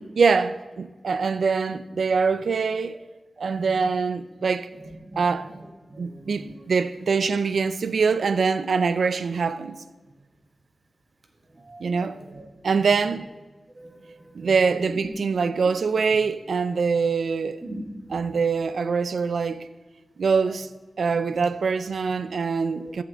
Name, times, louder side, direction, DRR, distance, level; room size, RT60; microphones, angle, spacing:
voice 1, 0.2-3.0 3.4-4.7 5.2-5.5 6.0-9.8 11.8-12.2 12.6-13.3 14.3-17.6 18.1-19.7 20.2-20.7 21.0-23.0, right 5 dB, 80° right, 0.5 m, -24 dB
voice 2, 3.5-3.9 4.8-5.3 5.9-6.5 11.6-12.4 13.7-14.5 17.6-18.2 22.5-22.9, right 1 dB, 30° right, 1.8 m, -42 dB
15.0 x 7.5 x 3.5 m
wide cardioid pair, 85°, 0 cm